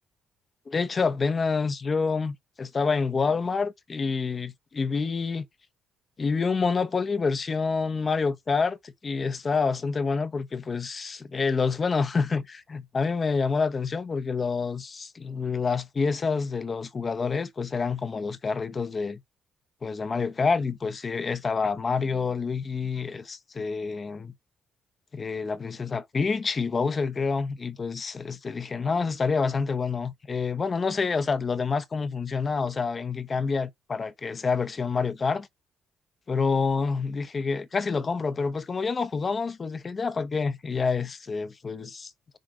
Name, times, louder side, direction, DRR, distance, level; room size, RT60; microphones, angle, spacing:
voice 1, 0.7-5.4 6.2-19.2 19.8-24.3 25.1-35.5 36.3-42.4, left 4 dB, 35° left, 1.1 m, -27 dB
6.4 x 3.7 x 5.0 m
cardioid pair, 90°, 0 cm